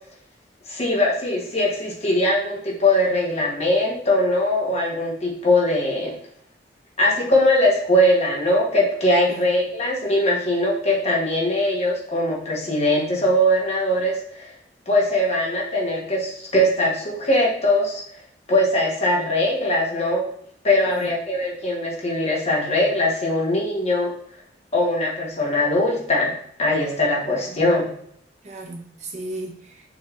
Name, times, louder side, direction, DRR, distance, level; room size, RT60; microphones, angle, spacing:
voice 1, 0.7-6.2 7.0-14.5 14.9-18.0 18.5-20.3 20.6-24.1 24.7-26.3 26.6-27.8, left 1 dB, 35° left, -2 dB, 1.2 m, -21 dB
voice 2, 27.3-27.7 28.4-29.8, right 2 dB, 40° right, 0 dB, 0.9 m, -36 dB
6.1 x 3.4 x 2.5 m, 0.65 s
head